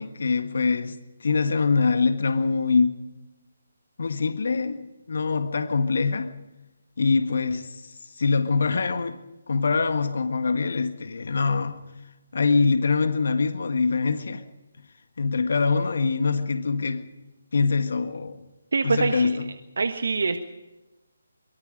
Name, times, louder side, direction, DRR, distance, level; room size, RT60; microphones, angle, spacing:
voice 1, 0.0-3.0 4.0-6.3 7.0-9.2 9.5-11.8 12.3-14.4 15.2-17.1 17.5-18.4 18.8-19.5, left 4 dB, 55° left, 1.6 m, -24 dB
voice 2, 18.7-19.4 19.8-20.4, right 4 dB, 60° right, 1.5 m, -24 dB
24.0 x 23.0 x 5.0 m
figure-of-eight pair, 145°, 0 cm